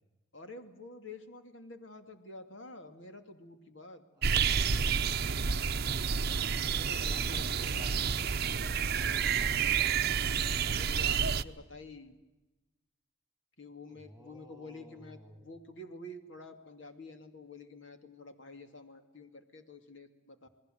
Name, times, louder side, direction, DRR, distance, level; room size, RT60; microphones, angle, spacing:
voice 1, 0.3-4.0 6.2-6.6 6.9-8.0 10.6-12.1 13.6-20.5, left 2 dB, 65° left, 6 dB, 2.5 m, -49 dB
sound 1, 4.2-11.4, right 6 dB, 50° right, 0.8 m, -29 dB
voice 2, 6.3-10.1 13.8-15.5, equal, 5° right, 4 dB, 3.0 m, -54 dB
29.0 x 21.0 x 7.8 m, 1.1 s
head